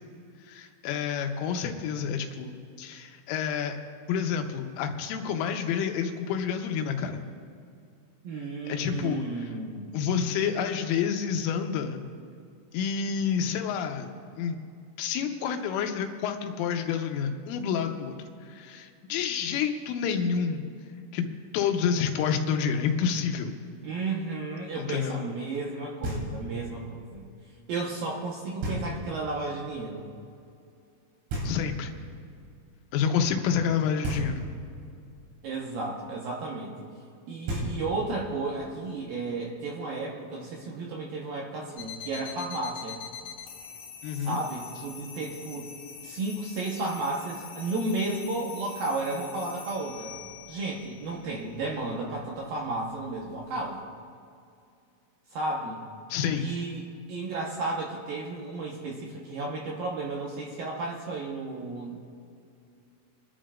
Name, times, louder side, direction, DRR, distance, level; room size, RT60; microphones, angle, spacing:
voice 1, 0.5-3.8 4.1-7.2 8.7-9.3 9.9-12.0 12.7-14.1 14.4-14.6 15.0-18.2 18.4-20.6 21.1-21.3 21.5-23.5 24.7-25.2 31.4-31.9 32.9-34.5 44.0-44.4 56.1-56.5, left 7 dB, 90° left, 4 dB, 3.5 m, -28 dB
voice 2, 8.2-9.9 23.8-27.3 27.7-30.1 35.4-36.9 37.3-43.0 44.1-45.7 46.0-50.1 50.5-53.8 55.3-55.8 56.4-62.0, right 3 dB, 70° right, -2 dB, 2.2 m, -33 dB
Knock, 26.0-26.7 28.6-29.3 31.3-32.1 34.0-34.8 37.1-37.2 37.5-38.3, right 1 dB, 90° right, 5.9 m, -33 dB
sound 1, 41.8-53.8, left 7 dB, 70° left, 4.0 m, -45 dB
29.0 x 11.5 x 2.5 m, 2.4 s
omnidirectional pair, 5.7 m